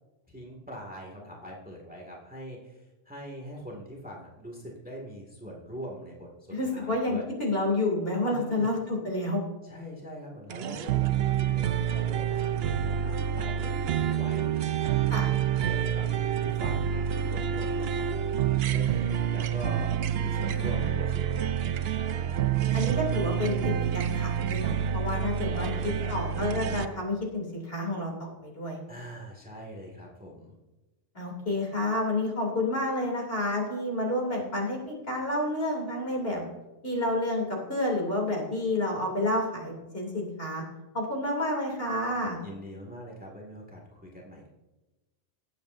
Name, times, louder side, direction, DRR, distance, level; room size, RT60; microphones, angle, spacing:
voice 1, 0.3-7.3 8.2-8.7 9.6-14.9 15.5-16.1 16.4-22.4 25.5-26.1 28.9-30.5 42.4-44.5, equal, 5° right, -1 dB, 2.0 m, -43 dB
voice 2, 6.5-9.4 15.1-15.3 20.5-20.9 22.7-25.7 26.1-28.8 31.1-36.4 36.8-40.6 40.9-42.4, left 1 dB, 50° left, -1 dB, 3.0 m, -29 dB
sound 1, 10.5-26.9, right 9 dB, 65° right, 0.7 m, -28 dB
19.5 x 8.2 x 2.6 m, 1.1 s
omnidirectional pair, 1.3 m